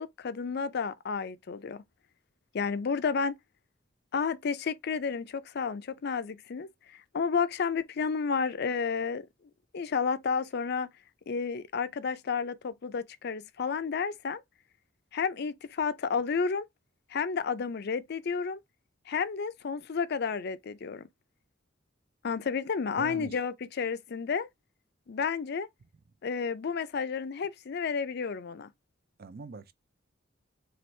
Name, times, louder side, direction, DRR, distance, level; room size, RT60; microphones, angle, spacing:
voice 1, 0.0-1.8 2.5-3.4 4.1-9.3 9.7-10.9 11.3-14.4 15.1-16.7 17.1-18.6 19.1-21.1 22.2-24.5 25.1-25.7 26.2-28.7, left 5 dB, 60° left, 0.5 m, -31 dB
voice 2, 23.0-23.4 29.2-29.7, right 4 dB, 55° right, 0.5 m, -42 dB
4.5 x 2.5 x 3.1 m
head